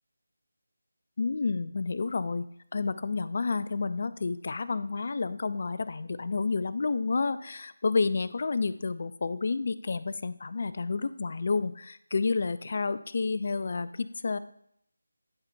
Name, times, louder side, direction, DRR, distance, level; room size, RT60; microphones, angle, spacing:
voice 1, 1.2-2.5 2.7-14.4, left 4 dB, 45° left, 14 dB, 0.3 m, -30 dB
11.0 x 4.2 x 2.6 m, 0.71 s
figure-of-eight pair, 160°, 0 cm